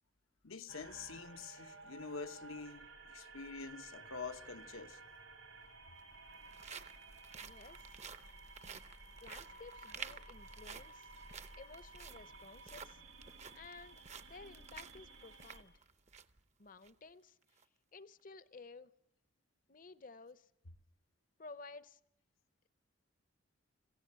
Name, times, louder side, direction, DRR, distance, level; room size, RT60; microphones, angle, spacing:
voice 1, 0.4-5.0, left 4 dB, 85° left, 1.1 m, -47 dB
sound 1, 0.7-15.6, right 3 dB, 90° right, 5.3 m, -55 dB
sound 2, 4.8-4.9 5.8-16.4 16.8-16.9 17.4-17.6, right 6 dB, 35° right, 0.7 m, -53 dB
voice 2, 7.4-7.9 9.2-11.1 11.6-13.0 13.5-15.7 16.6-17.4 17.9-18.9 19.7-20.5 21.4-22.0, left 4 dB, 40° left, 0.8 m, -54 dB
27.0 x 16.5 x 7.6 m
head